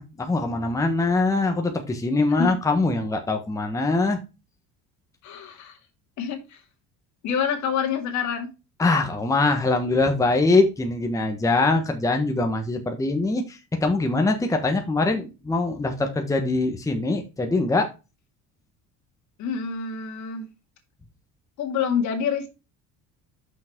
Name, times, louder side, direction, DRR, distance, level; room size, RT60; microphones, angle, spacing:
voice 1, 0.0-4.2 8.8-17.9, left 3 dB, 10° left, 4 dB, 1.2 m, -23 dB
voice 2, 5.2-5.8 6.2-6.6 7.2-8.5 19.4-20.5 21.6-22.5, left 7 dB, 60° left, 4 dB, 2.2 m, -27 dB
6.2 x 5.7 x 4.4 m, 0.28 s
cardioid pair, 145°, 33 cm